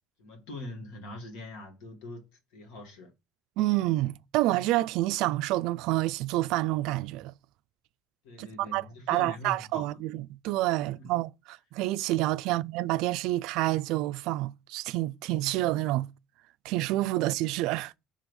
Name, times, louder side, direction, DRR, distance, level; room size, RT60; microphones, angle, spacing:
voice 1, 0.2-3.1 8.2-10.0 10.8-11.1 12.4-12.6, left 1 dB, 70° left, 2.1 m, -43 dB
voice 2, 3.6-7.3 8.4-16.1 16.6-17.9, right 17 dB, 65° right, 0.3 m, -28 dB
6.3 x 3.4 x 5.3 m
cardioid pair, 165°, 0 cm